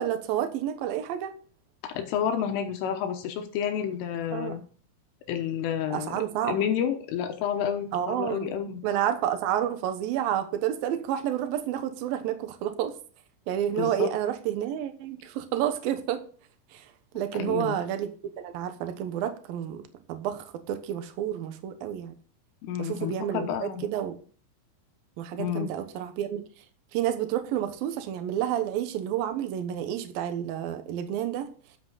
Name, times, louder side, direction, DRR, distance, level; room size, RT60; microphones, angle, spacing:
voice 1, 0.0-1.3 4.3-4.5 5.9-6.6 7.9-8.5 8.8-12.9 13.5-16.2 16.7-16.8 17.1-18.1 18.4-19.8 20.1-22.1 22.8-24.2 25.2-26.4 26.9-31.5, right 11 dB, 85° right, 8 dB, 2.0 m, -30 dB
voice 2, 1.8-4.6 5.3-8.8 13.8-14.1 17.3-17.8 22.6-23.8 25.4-25.7, left 9 dB, 80° left, 5 dB, 3.4 m, -30 dB
13.0 x 7.6 x 4.0 m, 0.41 s
omnidirectional pair, 6.0 m